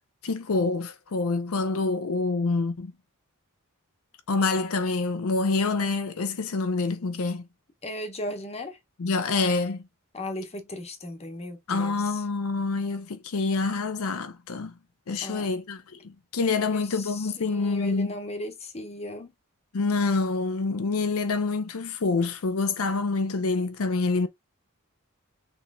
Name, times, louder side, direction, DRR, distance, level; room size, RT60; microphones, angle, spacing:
voice 1, 0.2-2.9 4.3-7.5 9.0-9.8 11.7-14.7 15.1-18.2 19.7-24.3, left 3 dB, 75° left, 0.6 m, -26 dB
voice 2, 7.8-8.8 10.1-12.2 15.2-15.5 16.6-16.8 17.2-19.3, left 1 dB, 30° left, 0.9 m, -36 dB
6.2 x 3.1 x 2.2 m
head